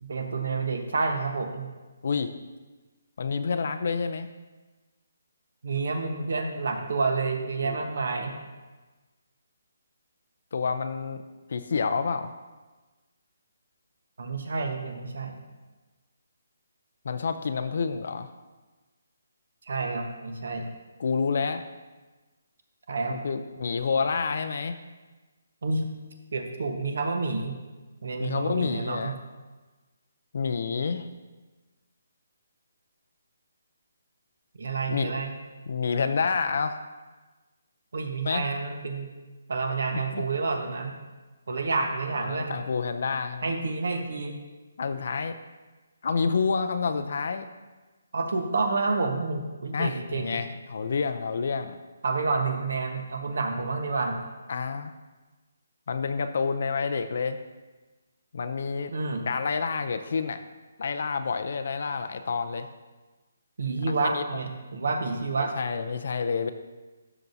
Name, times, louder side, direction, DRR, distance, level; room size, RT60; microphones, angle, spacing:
voice 1, 0.0-1.7 5.6-8.3 14.2-15.4 19.6-20.7 22.9-23.2 25.6-25.8 26.3-27.6 28.0-29.2 34.6-35.3 37.9-39.1 39.5-40.9 41.5-42.6 43.4-44.4 48.1-50.4 52.0-54.2 58.9-59.2 63.6-65.5, right 3 dB, 65° right, 5 dB, 1.1 m, -29 dB
voice 2, 3.2-4.3 7.6-7.8 10.5-11.2 11.5-12.3 17.0-18.3 21.0-21.6 23.1-24.8 28.2-29.1 30.3-31.1 34.9-35.1 35.7-36.8 38.3-38.4 39.9-40.2 42.2-43.6 44.8-45.4 46.0-47.5 49.7-51.8 54.5-54.9 55.9-57.4 58.3-58.9 59.3-60.4 60.8-62.7 64.0-64.2 65.6-66.5, left 5 dB, 55° left, 9 dB, 0.4 m, -28 dB
12.5 x 5.9 x 2.7 m, 1.2 s
hypercardioid pair, 170°, 0 cm